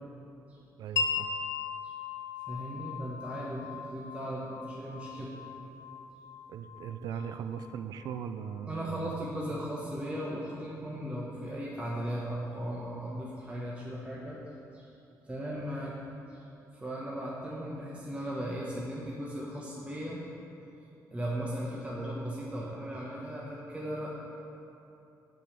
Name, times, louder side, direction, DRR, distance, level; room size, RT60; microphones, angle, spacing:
voice 1, 0.8-1.3 6.5-9.1, right 7 dB, 75° right, 10 dB, 0.5 m, -39 dB
Wind chime, 1.0-8.6, left 5 dB, 50° left, 0.6 m, -38 dB
voice 2, 2.5-5.3 8.7-14.4 14.7-14.9 15.2-15.9 16.3-16.4 16.7-20.2 21.1-24.2, equal, 20° right, -5 dB, 1.1 m, -37 dB
7.6 x 5.4 x 7.2 m, 2.9 s
cardioid pair, 110°, 7 cm